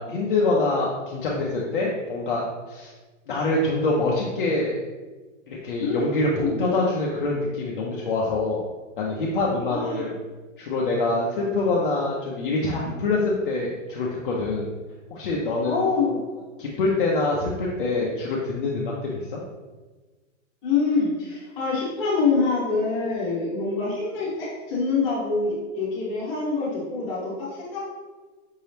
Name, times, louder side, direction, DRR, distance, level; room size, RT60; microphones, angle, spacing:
voice 1, 0.0-2.9 3.3-4.8 5.5-8.6 9.0-10.1 10.6-14.7 15.1-15.9 16.6-19.4, left 2 dB, 45° left, -4 dB, 0.6 m, -25 dB
voice 2, 5.8-6.5 9.7-10.1 15.6-16.2 20.6-27.8, left 4 dB, 10° left, -9 dB, 1.1 m, -25 dB
5.4 x 2.8 x 3.3 m, 1.3 s
supercardioid pair, 180°, 39 cm